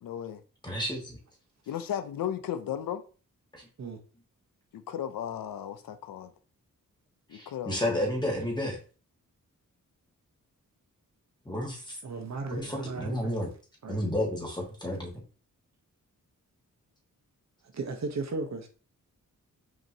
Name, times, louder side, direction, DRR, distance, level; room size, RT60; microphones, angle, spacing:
voice 1, 0.0-0.4 1.7-3.0 4.7-6.3 7.3-8.0, left 9 dB, 90° left, 0.5 m, -35 dB
voice 2, 0.6-1.2 3.5-3.7 7.3-8.8 11.4-12.0 12.5-13.5 13.9-15.1, left 1 dB, 15° left, 1.5 m, -31 dB
voice 3, 12.0-13.3 13.8-14.0 17.7-18.7, right 3 dB, 55° right, 0.8 m, -35 dB
5.2 x 2.9 x 2.7 m
wide cardioid pair, 90°, 33 cm